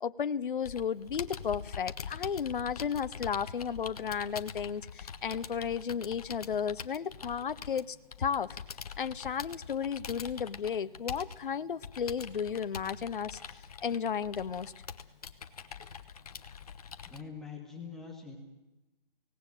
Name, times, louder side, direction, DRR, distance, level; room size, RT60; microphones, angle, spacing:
voice 1, 0.0-8.5 9.0-13.4 13.8-14.7, left 7 dB, 60° left, 13 dB, 0.7 m, -33 dB
Computer keyboard, 0.6-17.2, left 6 dB, 40° left, 1.0 m, -44 dB
voice 2, 17.0-18.4, left 5 dB, ahead, -1 dB, 1.1 m, -44 dB
25.0 x 18.0 x 7.8 m, 1.0 s
hypercardioid pair, 165°, 30 cm